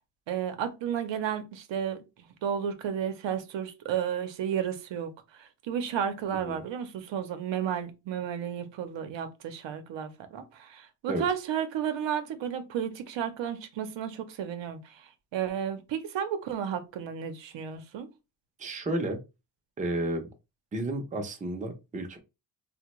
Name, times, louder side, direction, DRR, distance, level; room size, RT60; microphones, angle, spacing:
voice 1, 0.3-2.0 2.4-5.1 5.4-14.8 15.3-18.1, right 8 dB, 80° right, 0.7 m, -32 dB
voice 2, 18.6-19.2 19.8-20.2 20.7-22.2, right 1 dB, 20° right, 0.5 m, -31 dB
3.3 x 2.1 x 2.9 m
wide cardioid pair, 135°, 44 cm